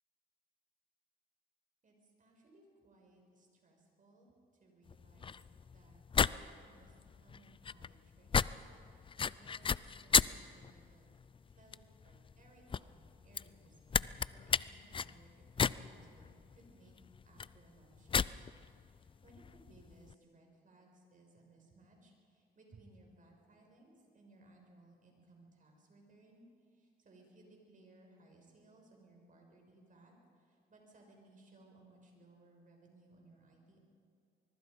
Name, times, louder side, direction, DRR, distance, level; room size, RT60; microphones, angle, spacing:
voice 1, 1.8-4.3 4.6-6.0 6.3-11.1 11.5-16.9 17.2-18.3 18.9-33.8, right 2 dB, 40° right, 0 dB, 6.2 m, -63 dB
sound 1, 4.9-20.1, left 6 dB, 25° left, 0.4 m, -36 dB
24.5 x 22.0 x 5.3 m, 2.4 s
cardioid pair, 90°, 20 cm